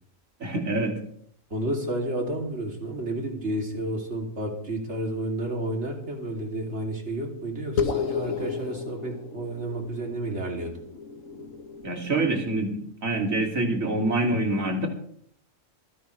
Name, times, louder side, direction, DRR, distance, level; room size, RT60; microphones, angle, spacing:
voice 1, 0.4-1.0 11.8-14.9, right 2 dB, 80° right, 2 dB, 3.1 m, -26 dB
voice 2, 1.5-10.7, right 1 dB, 55° right, 1 dB, 3.3 m, -31 dB
sound 1, 7.8-12.6, left 6 dB, 80° left, 1.6 m, -33 dB
26.5 x 10.5 x 3.3 m, 0.63 s
omnidirectional pair, 1.4 m